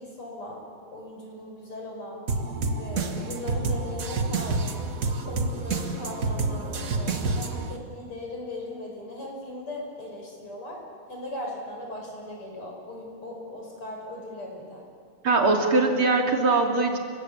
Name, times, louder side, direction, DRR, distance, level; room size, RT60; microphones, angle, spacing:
voice 1, 0.0-2.3 2.7-4.7 5.3-10.8 11.1-14.9, left 1 dB, 80° left, 0 dB, 7.1 m, -38 dB
sound 1, 2.3-7.8, right 3 dB, 40° right, 1.9 m, -28 dB
voice 2, 15.2-17.0, right 3 dB, 70° right, 2 dB, 3.8 m, -21 dB
29.0 x 23.0 x 8.7 m, 2.2 s
omnidirectional pair, 2.4 m